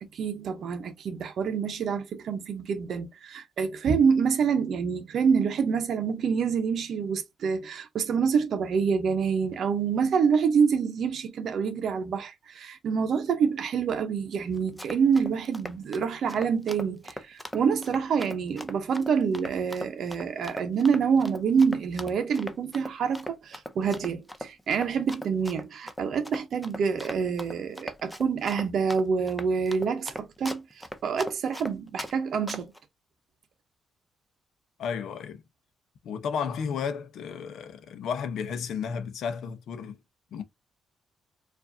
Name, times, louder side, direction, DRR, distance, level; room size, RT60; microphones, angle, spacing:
voice 1, 0.0-32.7, right 6 dB, 55° right, 0.7 m, -27 dB
Run, 14.6-32.1 32.5-32.8, equal, 5° left, 0.4 m, -39 dB
voice 2, 34.8-35.4 36.0-40.0 40.3-40.4, left 6 dB, 65° left, 0.7 m, -33 dB
4.6 x 2.6 x 2.6 m
cardioid pair, 160°, 0 cm